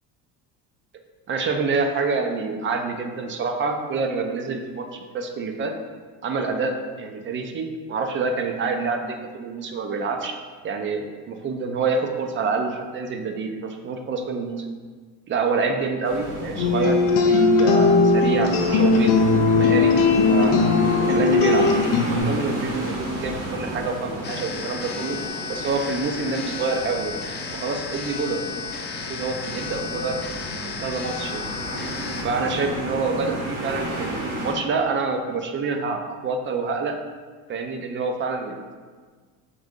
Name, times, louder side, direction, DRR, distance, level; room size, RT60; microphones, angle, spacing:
voice 1, 1.3-5.7 6.2-10.4 10.6-14.6 15.3-19.1 19.6-19.9 20.3-20.6 21.1-21.7 22.1-25.2 25.5-27.2 27.6-28.6 29.1-30.2 30.8-31.5 32.2-37.0 37.5-38.8, right 4 dB, 30° right, 5 dB, 0.5 m, -27 dB
sound 1, 16.0-34.5, right 1 dB, 85° right, 1.4 m, -32 dB
sound 2, 16.6-22.2, left 3 dB, 70° left, 0.6 m, -18 dB
sound 3, 24.2-32.2, left 6 dB, 30° left, 0.4 m, -34 dB
5.0 x 2.6 x 3.6 m, 1.5 s
supercardioid pair, 100°, 38 cm